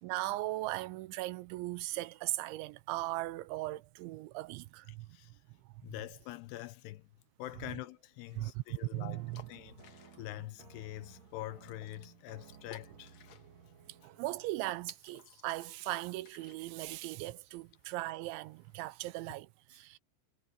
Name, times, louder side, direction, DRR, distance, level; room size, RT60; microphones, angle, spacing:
voice 1, 0.0-5.1 8.4-8.6 8.9-9.4 14.0-20.0, right 18 dB, 85° right, 3.0 m, -38 dB
voice 2, 5.8-7.1 7.4-9.2 9.5-13.2, left 16 dB, 80° left, 2.6 m, -45 dB
sound 1, 8.2-18.7, left 8 dB, 60° left, 1.9 m, -61 dB
sound 2, 9.1-14.7, right 7 dB, 45° right, 2.6 m, -58 dB
omnidirectional pair, 5.3 m